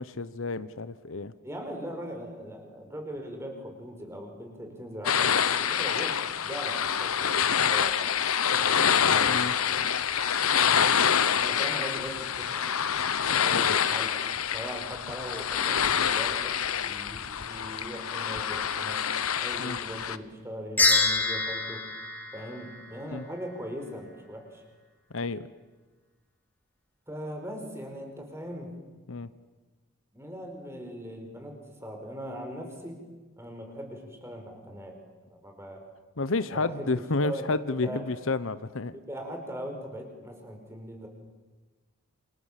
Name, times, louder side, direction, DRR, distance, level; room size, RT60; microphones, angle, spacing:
voice 1, 0.0-1.3 9.2-9.5 13.5-13.7 19.6-19.8 23.1-23.2 25.1-25.5 29.1-29.3 36.2-38.9, left 3 dB, 70° left, 14 dB, 0.9 m, -30 dB
voice 2, 1.4-8.2 8.6-9.3 11.3-12.7 13.2-14.2 14.5-19.0 19.4-21.8 22.3-24.6 27.1-28.7 30.1-33.0 33.4-34.9 35.3-35.8 36.5-38.0 38.9-41.1, equal, 10° right, 3 dB, 5.0 m, -40 dB
sound 1, 5.0-20.2, left 8 dB, 90° left, 1.1 m, -26 dB
sound 2, 20.8-23.2, left 3 dB, 10° left, 2.9 m, -26 dB
29.0 x 27.0 x 7.5 m, 1.2 s
head